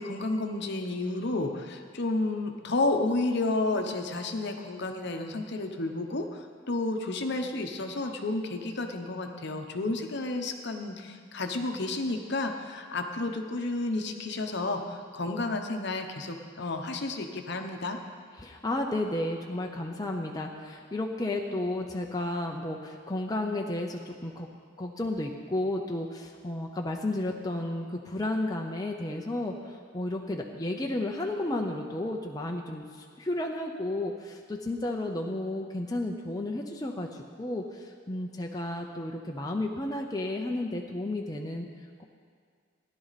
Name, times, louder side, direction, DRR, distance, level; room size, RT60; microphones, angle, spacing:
voice 1, 0.0-18.0, left 2 dB, 55° left, 5 dB, 0.9 m, -31 dB
voice 2, 18.4-24.5 24.8-41.7, left 1 dB, 20° left, 1 dB, 0.6 m, -32 dB
16.0 x 11.0 x 4.1 m, 2.1 s
head